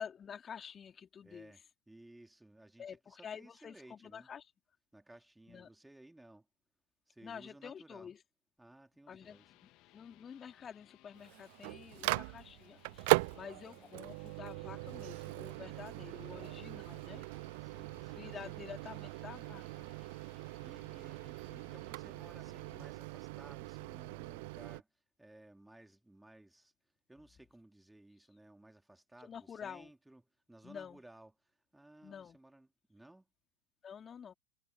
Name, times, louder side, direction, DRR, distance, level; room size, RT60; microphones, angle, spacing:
voice 1, 0.0-1.5 2.8-4.5 5.5-5.7 7.2-8.2 9.1-17.3 18.2-19.9 29.2-29.9 30.6-31.0 32.0-32.4 33.8-34.3, left 7 dB, 20° left, 3.0 m, -49 dB
voice 2, 1.2-4.3 4.9-6.5 7.1-8.1 8.6-9.5 13.3-14.0 17.6-18.5 20.6-24.9 25.2-26.7 27.1-30.2 30.5-33.3, right 1 dB, 5° right, 3.0 m, -59 dB
sound 1, 8.9-22.9, left 19 dB, 40° left, 2.7 m, -65 dB
Microwave oven, 11.1-24.8, right 26 dB, 50° right, 0.3 m, -39 dB
figure-of-eight pair, 90°, 0 cm